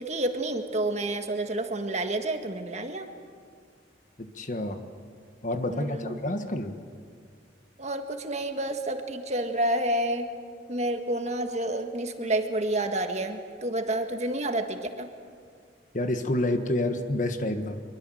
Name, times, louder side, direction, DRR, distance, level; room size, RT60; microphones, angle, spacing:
voice 1, 0.0-3.1 5.7-6.2 7.8-10.3 10.7-15.1, right 1 dB, 40° right, 6 dB, 1.7 m, -29 dB
voice 2, 4.2-4.8 5.4-6.8 15.9-17.8, left 1 dB, 45° left, 7 dB, 1.5 m, -28 dB
24.5 x 23.0 x 7.9 m, 2.1 s
head